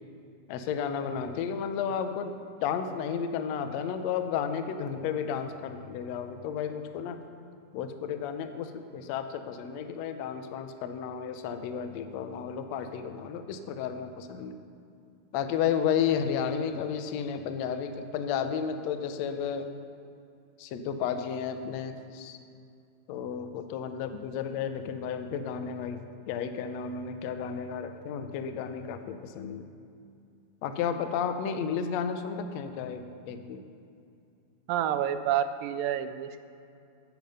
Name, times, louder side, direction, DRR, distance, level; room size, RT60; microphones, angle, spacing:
voice 1, 0.5-2.3 2.6-7.2 7.7-14.6 15.3-19.7 20.6-22.4 23.1-29.7 30.6-33.6, left 7 dB, 90° left, 8 dB, 1.5 m, -32 dB
voice 2, 34.7-36.4, right 10 dB, 85° right, 11 dB, 2.3 m, -28 dB
9.2 x 9.1 x 5.4 m, 2.5 s
omnidirectional pair, 3.9 m